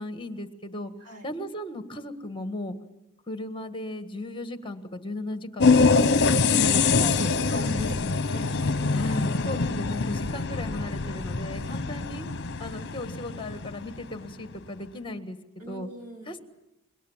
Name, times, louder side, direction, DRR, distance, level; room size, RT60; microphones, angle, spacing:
voice 1, 0.0-0.9 1.2-2.8 3.3-6.0 6.5-8.1 8.9-12.3 12.6-15.4 15.7-15.9 16.2-16.4, left 1 dB, 25° left, 9 dB, 1.6 m, -36 dB
sound 1, 5.6-14.0, left 4 dB, 50° left, 0.9 m, -24 dB
voice 2, 6.3-6.7 7.0-7.7 8.1-8.8 15.6-16.3, equal, 90° right, 3 dB, 3.6 m, -39 dB
27.5 x 22.5 x 7.3 m, 0.93 s
head